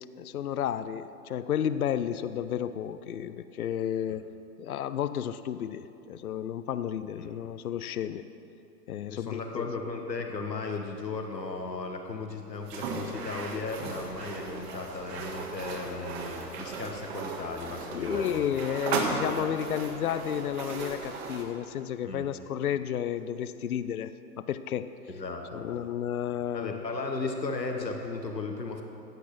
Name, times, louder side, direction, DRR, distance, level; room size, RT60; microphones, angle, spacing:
voice 1, 0.2-4.2 4.6-8.2 8.9-9.7 17.9-24.9 25.5-26.8, left 9 dB, 60° left, 13 dB, 0.6 m, -32 dB
voice 2, 9.1-18.4 22.0-22.3 25.1-25.7 26.5-28.8, left 3 dB, 80° left, 3 dB, 1.4 m, -36 dB
sound 1, 12.6-21.5, right 4 dB, 40° right, 1.7 m, -36 dB
16.0 x 8.2 x 6.1 m, 3.0 s
figure-of-eight pair, 110°, 49 cm